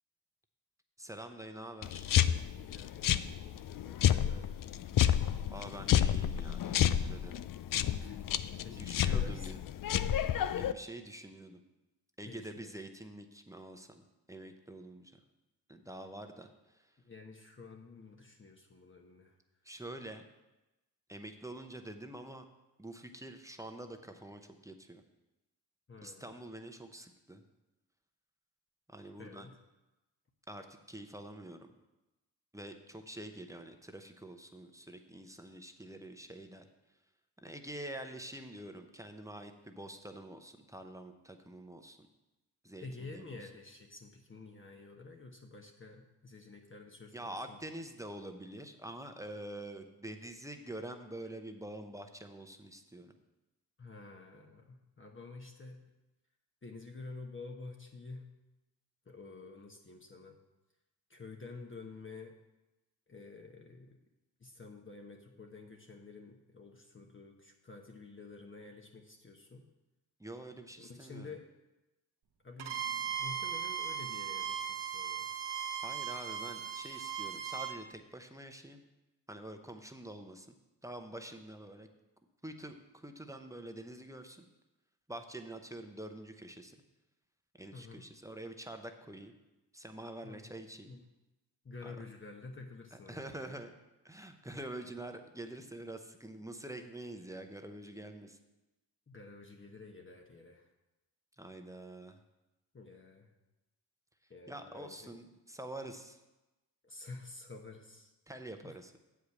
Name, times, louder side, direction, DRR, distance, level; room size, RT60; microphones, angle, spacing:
voice 1, 1.0-2.2 5.5-7.4 8.7-9.6 10.5-11.6 12.2-14.0 14.3-15.2 15.7-16.9 19.6-20.2 21.1-22.4 22.8-25.0 26.0-27.4 28.9-29.5 30.5-31.7 32.5-36.7 37.4-42.0 42.6-43.5 47.1-53.1 70.2-71.3 75.8-78.8 79.3-80.6 80.8-81.9 82.4-84.4 85.1-86.8 87.6-89.4 89.7-90.9 91.8-92.0 92.9-93.7 94.0-98.4 101.4-102.2 104.5-106.2 108.3-109.0, right 1 dB, 10° right, 6 dB, 0.7 m, -46 dB
sound 1, 1.8-10.7, left 10 dB, 55° left, 0.5 m, -30 dB
voice 2, 2.5-4.6 8.0-8.2 8.6-9.5 12.3-12.7 17.0-19.4 25.9-26.3 29.2-29.6 42.8-47.6 53.8-55.8 56.6-58.3 59.1-60.4 61.1-62.4 63.1-64.0 64.4-69.6 70.8-71.4 72.4-75.3 87.7-88.0 90.2-90.5 90.9-91.0 91.6-93.3 99.1-100.7 102.7-103.3 104.3-105.1 106.8-108.1 108.6-108.8, left 3 dB, 30° left, 2 dB, 1.0 m, -50 dB
Bowed string instrument, 72.6-77.8, right 9 dB, 75° right, 1.1 m, -38 dB
8.0 x 5.0 x 7.1 m, 1.0 s
cardioid pair, 75°, 40 cm